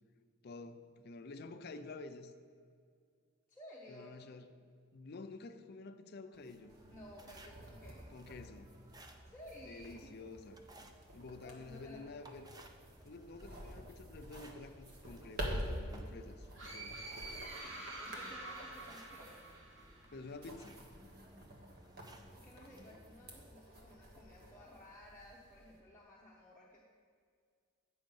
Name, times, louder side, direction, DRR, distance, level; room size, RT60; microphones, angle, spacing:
voice 1, 0.4-2.3 3.9-4.5 4.9-6.8 8.1-8.7 9.6-10.6 11.1-12.4 13.0-17.0 20.1-20.8, left 3 dB, 50° left, 8 dB, 0.5 m, -50 dB
voice 2, 3.5-4.3 6.9-8.1 9.3-10.1 11.4-12.4 18.0-19.4 22.3-26.8, left 1 dB, 10° left, -5 dB, 0.8 m, -55 dB
sound 1, 6.3-23.5, right 1 dB, 20° right, 0.5 m, -60 dB
sound 2, 6.7-25.8, equal, 50° right, 1.4 m, -49 dB
sound 3, 16.5-20.2, right 2 dB, 70° right, 1.7 m, -47 dB
8.8 x 6.3 x 5.4 m, 2.1 s
head